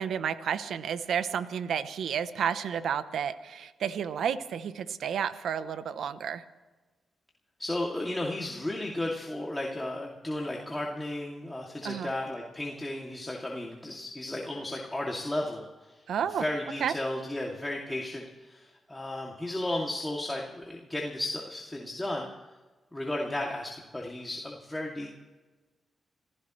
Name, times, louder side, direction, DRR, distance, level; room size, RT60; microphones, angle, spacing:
voice 1, 0.0-6.4 11.8-12.1 16.1-16.4 16.8-16.9, right 8 dB, 80° right, 12 dB, 0.8 m, -31 dB
voice 2, 7.6-15.6 16.3-22.3 22.9-25.1, left 1 dB, 15° left, -2 dB, 2.5 m, -34 dB
27.5 x 15.5 x 3.2 m, 1.2 s
cardioid pair, 65°, 0 cm